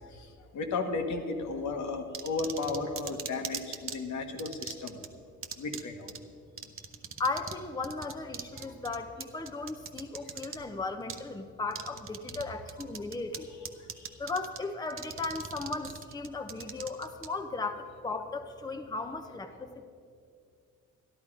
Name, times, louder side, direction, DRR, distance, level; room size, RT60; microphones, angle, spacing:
voice 1, 0.0-5.0 5.6-6.1 8.5-8.7 13.9-14.1, left 3 dB, 70° left, 4 dB, 1.4 m, -34 dB
sound 1, 2.1-4.0 4.4-5.1 5.4-5.8 6.1-6.2 6.6-7.6 7.8-10.6 11.1-11.2 11.7-12.4 12.7-13.4 13.7-14.6 14.9-17.3, right 7 dB, 45° right, 0.8 m, -39 dB
voice 2, 7.2-13.5 14.2-19.8, left 3 dB, 15° left, 6 dB, 0.7 m, -36 dB
12.5 x 11.5 x 4.9 m, 2.3 s
cardioid pair, 90°, 30 cm